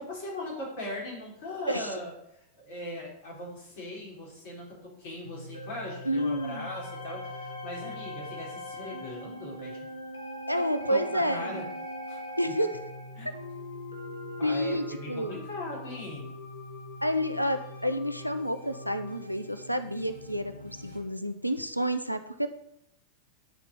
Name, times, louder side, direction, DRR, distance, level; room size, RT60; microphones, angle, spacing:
voice 1, 0.0-2.1 2.6-4.7 5.0-9.9 10.9-11.6 12.1-12.2 12.5-12.6 13.2-13.3 14.4-16.3, left 1 dB, 50° left, -3 dB, 3.4 m, -39 dB
sound 1, 5.2-21.0, left 1 dB, 85° left, 1.5 m, -41 dB
voice 2, 6.0-6.7 10.5-11.6 12.4-12.7 14.4-15.4 17.0-22.5, equal, 90° right, 9 dB, 0.5 m, -29 dB
9.1 x 4.3 x 5.4 m, 0.78 s
figure-of-eight pair, 90°, 0 cm